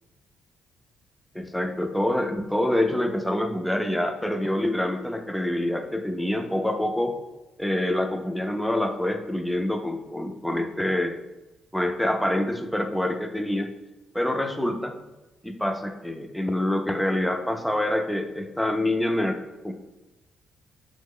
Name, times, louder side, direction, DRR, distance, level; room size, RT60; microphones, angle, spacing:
voice 1, 1.3-7.2 7.6-11.1 11.7-13.7 14.1-15.0 15.4-19.7, left 1 dB, 5° left, 5 dB, 0.3 m, -26 dB
2.9 x 2.0 x 3.6 m, 1.1 s
cardioid pair, 90°, 0 cm